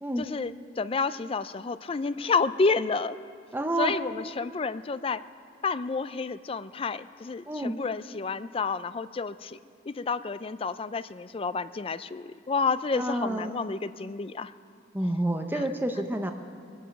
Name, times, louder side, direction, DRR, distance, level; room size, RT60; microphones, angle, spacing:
voice 1, 0.2-3.2 3.8-5.2 5.6-9.6 9.9-14.5 15.5-15.6, left 4 dB, 30° left, 14 dB, 0.4 m, -30 dB
voice 2, 3.5-3.9 7.5-7.8 12.9-13.5 14.9-16.3, right 1 dB, 10° right, 5 dB, 0.7 m, -29 dB
23.0 x 9.1 x 5.9 m, 2.3 s
head